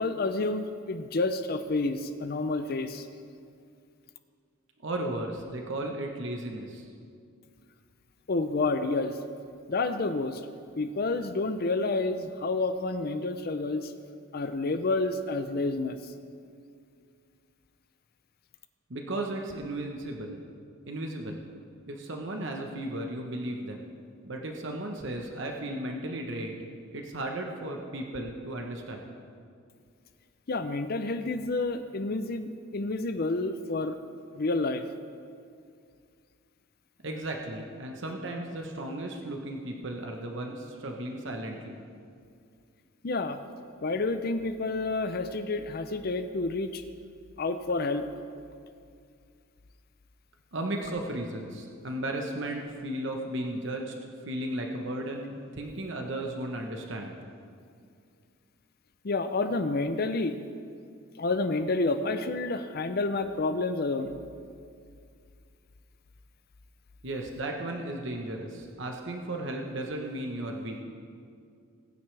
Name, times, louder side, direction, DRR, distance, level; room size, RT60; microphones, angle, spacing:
voice 1, 0.0-3.1 8.3-9.2 9.7-10.4 10.8-13.9 14.3-16.1 30.5-34.0 34.4-34.8 43.0-43.4 43.8-46.8 47.4-48.1 59.0-60.4 61.2-64.2, left 3 dB, 45° left, 9 dB, 0.5 m, -29 dB
voice 2, 4.8-6.9 18.9-20.4 20.9-21.4 21.9-23.9 24.2-26.6 26.9-29.0 37.0-41.8 50.5-53.9 54.3-57.2 67.0-70.8, right 1 dB, 60° right, 2 dB, 1.0 m, -35 dB
20.0 x 9.5 x 3.3 m, 2.3 s
head